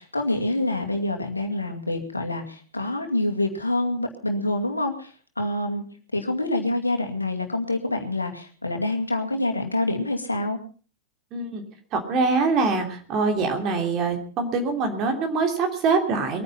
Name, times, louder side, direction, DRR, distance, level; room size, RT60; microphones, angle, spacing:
voice 1, 0.0-5.8 6.1-10.6, left 2 dB, 80° left, 4 dB, 2.3 m, -26 dB
voice 2, 11.3-11.6 11.9-16.4, right 4 dB, 35° right, 3 dB, 3.2 m, -24 dB
22.5 x 9.6 x 5.7 m, 0.40 s
figure-of-eight pair, 90°, 0 cm